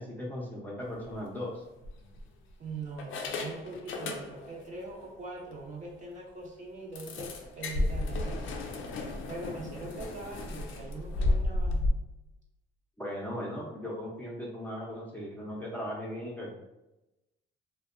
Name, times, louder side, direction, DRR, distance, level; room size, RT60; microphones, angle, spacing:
voice 1, 0.0-1.6 13.0-16.6, left 1 dB, 10° left, -5 dB, 0.6 m, -38 dB
sound 1, 0.9-1.2 1.8-2.5 3.0-4.6 5.0-5.1 5.5-5.6 5.9-6.0 7.0-11.9, left 2 dB, 80° left, 0.4 m, -33 dB
voice 2, 2.6-8.6 9.3-11.9, right 3 dB, 40° right, -3 dB, 0.7 m, -42 dB
2.6 x 2.1 x 2.5 m, 0.96 s
cardioid pair, 90°, 20 cm